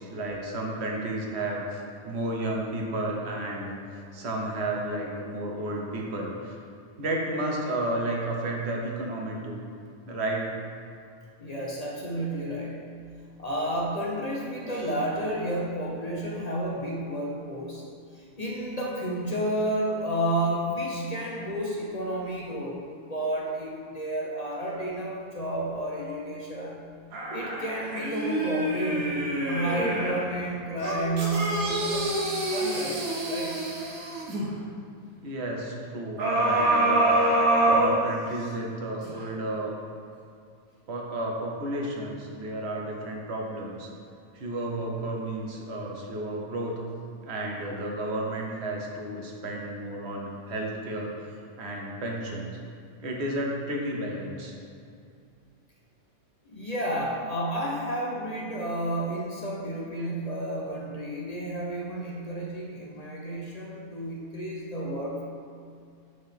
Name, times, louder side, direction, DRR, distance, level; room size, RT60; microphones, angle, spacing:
voice 1, 0.0-6.5 7.0-9.6 10.1-10.5 35.2-37.0 37.6-39.8 40.9-43.9 44.3-46.8 47.3-52.5 53.0-54.5, right 1 dB, 55° right, -1 dB, 1.1 m, -32 dB
voice 2, 11.4-12.7 13.4-17.8 18.1-22.8 23.1-26.8 27.3-32.1 32.5-33.6 56.5-65.2, right 1 dB, 40° left, -4 dB, 0.6 m, -31 dB
sound 1, 27.1-30.3 30.8-34.5 36.2-38.5 39.0-39.1, right 1 dB, 85° right, 1.4 m, -26 dB
7.9 x 3.9 x 3.5 m, 2.3 s
omnidirectional pair, 1.5 m